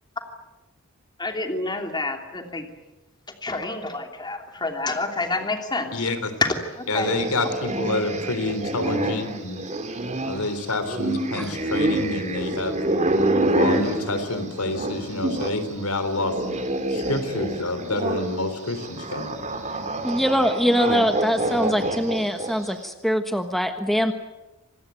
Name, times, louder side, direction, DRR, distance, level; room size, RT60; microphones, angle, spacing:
voice 1, 1.2-2.7 3.4-6.1 6.4-7.1, left 2 dB, 20° left, 4 dB, 2.9 m, -28 dB
voice 2, 5.9-6.3 6.9-9.6 10.3-12.8 13.5-16.4 16.9-19.3, left 2 dB, 75° left, 10 dB, 3.8 m, -28 dB
sound 1, 6.9-15.6 15.9-22.7, right 1 dB, 30° right, 2.7 m, -27 dB
voice 3, 20.0-24.1, equal, ahead, 6 dB, 1.3 m, -23 dB
26.5 x 20.0 x 9.4 m, 1.0 s
head